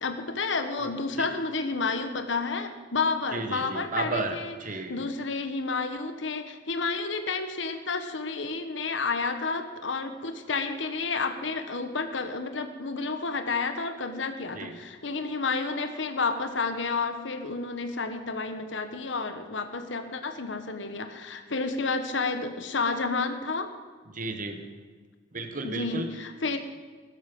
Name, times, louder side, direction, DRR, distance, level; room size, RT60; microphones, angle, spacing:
voice 1, 0.0-4.5 4.9-23.7 25.6-26.6, left 4 dB, 75° left, 7 dB, 1.3 m, -30 dB
voice 2, 3.3-5.0 14.6-14.7 24.1-24.6 25.3-26.1, right 2 dB, 45° right, 6 dB, 1.4 m, -33 dB
16.0 x 13.0 x 5.4 m, 1.5 s
head